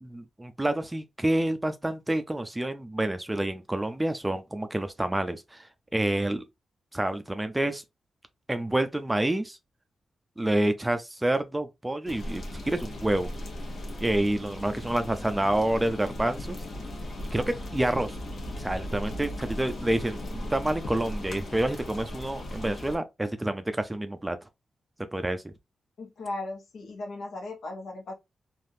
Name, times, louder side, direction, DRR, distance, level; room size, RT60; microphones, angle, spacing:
voice 1, 0.0-6.4 6.9-7.8 8.5-9.6 10.4-13.3 14.0-16.6 17.3-18.2 18.6-24.4 25.1-25.5, right 1 dB, 10° right, 0.4 m, -28 dB
sound 1, 12.1-23.0, left 1 dB, 55° left, 1.1 m, -37 dB
voice 2, 26.0-28.1, left 2 dB, 80° left, 0.9 m, -37 dB
3.4 x 2.4 x 2.7 m
wide cardioid pair, 135°, 0 cm